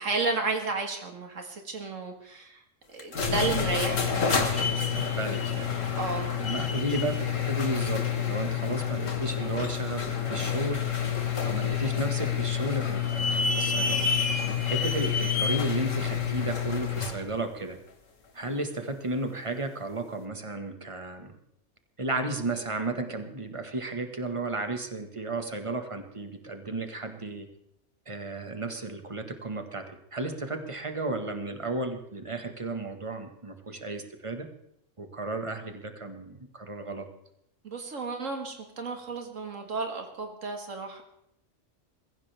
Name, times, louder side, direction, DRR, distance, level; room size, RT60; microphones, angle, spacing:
voice 1, 0.0-2.6 2.9-4.6 6.0-6.3 37.6-41.0, right 3 dB, 85° right, 4 dB, 2.2 m, -32 dB
sound 1, 3.0-17.2, left 7 dB, 85° left, 1.9 m, -28 dB
voice 2, 4.4-5.7 6.4-10.8 11.4-14.1 14.6-17.8 18.3-21.3 22.0-27.5 28.1-34.5 35.0-37.1, right 2 dB, 25° right, 6 dB, 1.6 m, -34 dB
22.5 x 15.0 x 3.5 m, 0.77 s
omnidirectional pair, 1.3 m